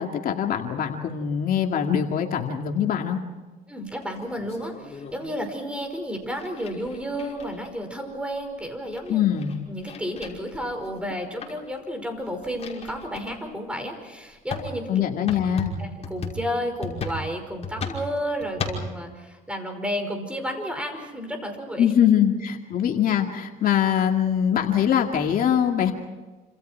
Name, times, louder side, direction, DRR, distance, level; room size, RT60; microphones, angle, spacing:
voice 1, 0.0-3.2 9.1-9.5 14.9-15.8 21.8-25.9, left 9 dB, 55° left, 3 dB, 2.2 m, -23 dB
voice 2, 3.7-9.3 9.7-15.1 15.8-21.9, equal, 5° right, 5 dB, 5.4 m, -32 dB
sound 1, 3.9-5.4 6.2-7.8 8.3-8.4 8.6-11.1 11.4-11.7 12.1-13.3 14.0-14.1 14.5-18.9, left 3 dB, 40° left, 5.5 m, -35 dB
29.0 x 27.0 x 4.6 m, 1.2 s
cardioid pair, 110°, 17 cm